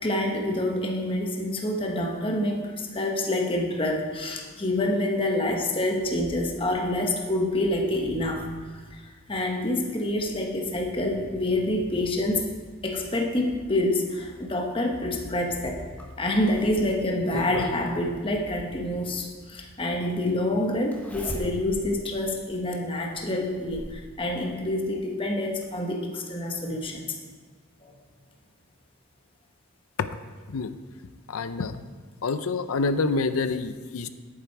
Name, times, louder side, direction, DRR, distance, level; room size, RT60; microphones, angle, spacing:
voice 1, 0.0-12.4 12.8-15.8 16.2-27.2 27.8-27.9, left 1 dB, 25° left, 1 dB, 1.1 m, -27 dB
Zipper (clothing), 16.0-17.8 19.2-19.3 20.9-21.9 22.4-22.5 23.2-24.0 25.2-25.3 25.6-25.7, equal, 10° left, 1.3 m, -38 dB
voice 2, 31.3-31.9 32.2-34.1, left 3 dB, 85° left, 12 dB, 0.5 m, -27 dB
10.5 x 8.8 x 4.5 m, 1.5 s
head